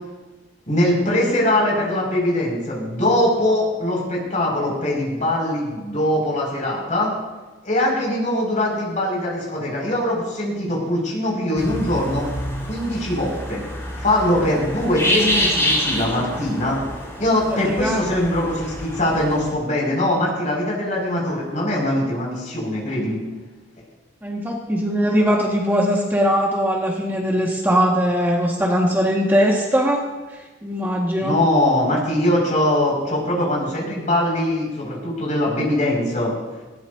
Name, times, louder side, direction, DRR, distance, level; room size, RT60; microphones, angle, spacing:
voice 1, 0.7-7.1 7.6-12.3 12.6-13.6 14.0-16.8 17.2-23.2 31.2-36.3, left 1 dB, 45° left, -3 dB, 6.2 m, -22 dB
sound 1, 11.6-19.5, equal, 15° left, 4.6 m, -27 dB
voice 2, 17.5-18.0 24.2-30.0 30.3-31.4, equal, 10° right, -3 dB, 1.9 m, -20 dB
20.0 x 18.0 x 2.8 m, 1.2 s
head